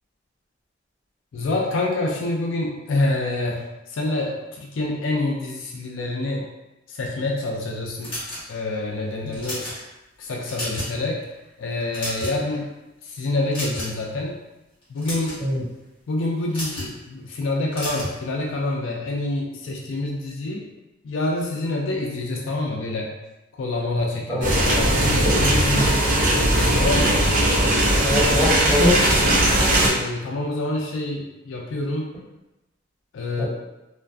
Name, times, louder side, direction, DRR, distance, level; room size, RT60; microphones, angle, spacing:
voice 1, 1.3-6.5 6.9-8.2 8.5-9.7 10.2-11.3 11.6-12.7 13.0-14.4 14.9-15.4 16.1-20.7 21.0-23.1 23.5-25.9 26.3-27.3 29.6-32.2 33.1-33.5, left 2 dB, 75° left, -1 dB, 0.3 m, -27 dB
sound 1, 8.0-8.7 9.3-9.8 10.3-11.0 11.3-11.5 11.8-12.6 13.5-14.0 14.8-15.4 16.5-16.9 17.7-18.1, left 1 dB, 25° left, 1.0 m, -31 dB
sound 2, 24.4-29.9, right 1 dB, 40° right, 0.5 m, -19 dB
voice 2, 28.0-29.2 33.4-33.5, left 1 dB, 10° left, -11 dB, 1.2 m, -22 dB
2.5 x 2.3 x 2.3 m, 1.0 s
head